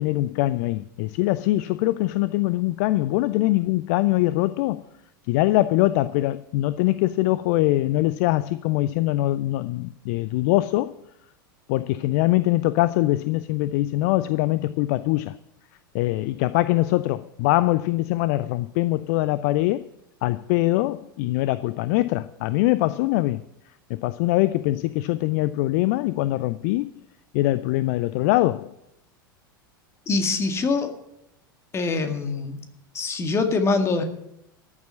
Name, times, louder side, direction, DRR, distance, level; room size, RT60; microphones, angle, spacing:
voice 1, 0.0-4.8 5.3-11.0 11.7-15.4 15.9-19.8 20.2-23.4 23.9-26.9 27.3-28.7, left 17 dB, 45° left, 0.4 m, -23 dB
voice 2, 30.1-30.9 31.7-32.6 32.9-34.0, left 3 dB, 25° left, 2.0 m, -24 dB
13.5 x 7.4 x 9.4 m
figure-of-eight pair, 85°, 11 cm